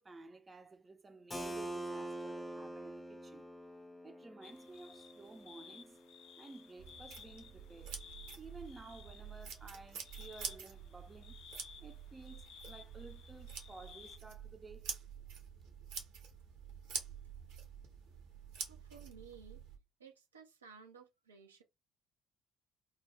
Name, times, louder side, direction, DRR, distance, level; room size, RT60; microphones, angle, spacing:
voice 1, 0.0-3.5 4.0-6.0 6.4-8.0 8.4-11.4 11.7-15.0, right 3 dB, 25° right, 0.5 m, -54 dB
Keyboard (musical), 1.3-6.9, right 1 dB, 15° left, 0.6 m, -46 dB
sound 1, 4.4-14.2, left 7 dB, 60° left, 0.4 m, -57 dB
sound 2, 6.8-19.8, right 6 dB, 65° right, 0.8 m, -47 dB
voice 2, 18.6-19.6 20.0-21.6, right 6 dB, 85° right, 0.5 m, -56 dB
2.3 x 2.0 x 3.2 m
figure-of-eight pair, 55°, 0 cm